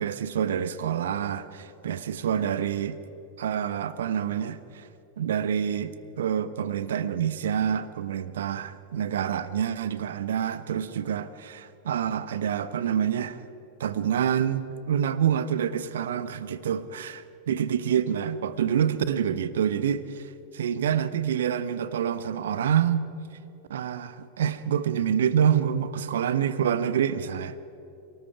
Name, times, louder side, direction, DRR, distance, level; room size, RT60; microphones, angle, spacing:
voice 1, 0.0-3.0 3.4-4.9 5.2-13.4 13.8-20.2 20.5-23.1 23.7-27.6, right 8 dB, 60° right, 1.0 m, -27 dB
28.5 x 19.0 x 4.9 m
figure-of-eight pair, 90°, 0 cm